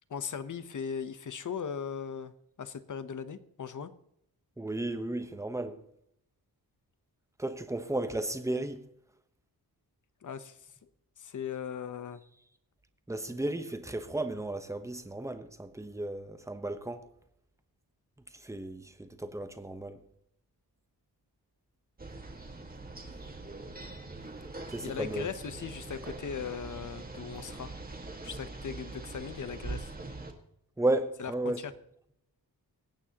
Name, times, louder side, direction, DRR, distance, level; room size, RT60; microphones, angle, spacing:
voice 1, 0.1-2.3 2.6-3.9 10.2-10.7 11.2-12.2 24.8-27.7 28.2-29.9 31.2-31.7, left 7 dB, 50° left, 0.9 m, -38 dB
voice 2, 4.6-5.8 7.4-8.8 13.1-17.1 18.3-20.0 24.7-25.3 30.8-31.6, right 2 dB, 10° right, 0.9 m, -34 dB
sound 1, 22.0-30.3, right 3 dB, 25° right, 1.6 m, -43 dB
24.5 x 8.8 x 2.9 m
wide cardioid pair, 160°, 39 cm